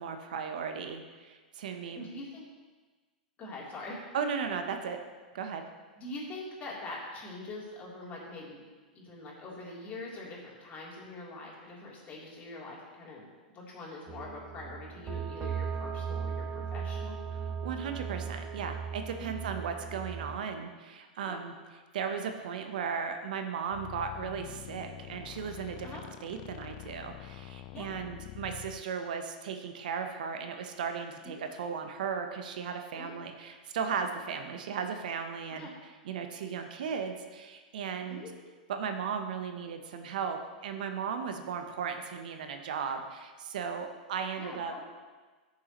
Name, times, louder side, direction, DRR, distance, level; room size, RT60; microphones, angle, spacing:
voice 1, 0.0-2.1 4.1-5.0 5.3-5.6 17.6-21.5 21.9-35.7 36.0-38.2 38.7-44.8, right 6 dB, 65° right, 6 dB, 0.9 m, -36 dB
voice 2, 1.9-2.4 3.4-4.0 6.0-8.7 8.9-17.2 19.2-19.4 21.3-21.4 25.8-26.0 27.7-27.9 31.2-31.4 33.0-33.1 35.5-35.7 38.1-38.3 44.4-44.8, left 2 dB, 30° left, -4 dB, 3.4 m, -43 dB
sound 1, 14.1-20.4, right 6 dB, 25° right, 0.7 m, -37 dB
sound 2, 23.7-28.8, left 15 dB, 45° left, 0.4 m, -46 dB
14.5 x 7.0 x 3.1 m, 1.4 s
hypercardioid pair, 105°, 5 cm